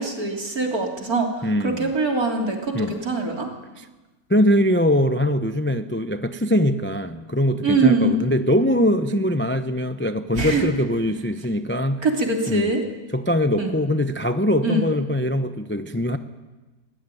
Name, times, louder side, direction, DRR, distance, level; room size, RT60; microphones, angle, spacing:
voice 1, 0.0-3.5 7.6-8.2 10.4-10.6 12.0-12.8 13.6-13.7 14.6-14.9, right 3 dB, 60° right, 1 dB, 3.7 m, -23 dB
voice 2, 1.4-1.9 2.7-2.9 3.8-3.9 4.3-12.0 12.5-12.7 13.1-16.2, equal, 15° left, 9 dB, 0.4 m, -22 dB
22.0 x 17.5 x 9.2 m, 1.2 s
omnidirectional pair, 1.8 m